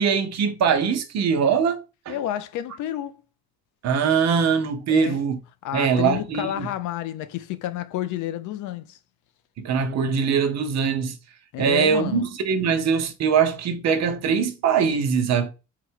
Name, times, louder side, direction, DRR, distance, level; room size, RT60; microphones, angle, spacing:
voice 1, 0.0-2.2 3.8-5.4 5.7-6.7 9.6-11.2 11.6-15.5, right 6 dB, 60° right, 0.9 m, -22 dB
voice 2, 2.1-3.2 4.9-5.2 5.6-9.0 11.5-12.3, left 12 dB, 85° left, 0.5 m, -30 dB
4.0 x 2.2 x 4.5 m
cardioid pair, 125°, 30 cm